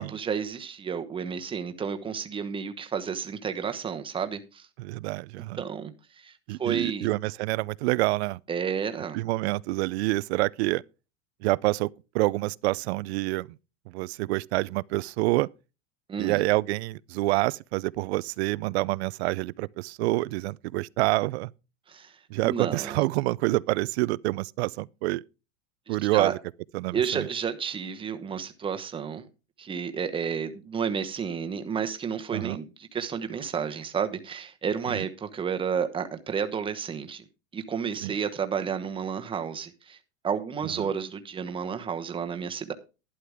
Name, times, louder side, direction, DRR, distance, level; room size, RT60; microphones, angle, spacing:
voice 1, 0.0-4.7 5.6-6.3 6.6-7.1 8.5-9.2 16.1-16.4 21.9-22.1 22.4-23.0 25.9-26.3 26.9-29.3 29.6-37.2 37.5-40.0 40.2-42.7, right 7 dB, 15° right, 1.0 m, -31 dB
voice 2, 4.8-5.6 6.5-8.4 9.1-10.8 11.4-11.9 12.1-13.5 13.9-15.5 16.2-21.5 22.3-25.2 25.9-26.4 26.7-27.3 32.3-32.6 34.9-35.1 38.0-38.1 40.8-40.9, right 20 dB, 60° right, 0.5 m, -27 dB
11.5 x 11.0 x 3.5 m
supercardioid pair, 150°, 38 cm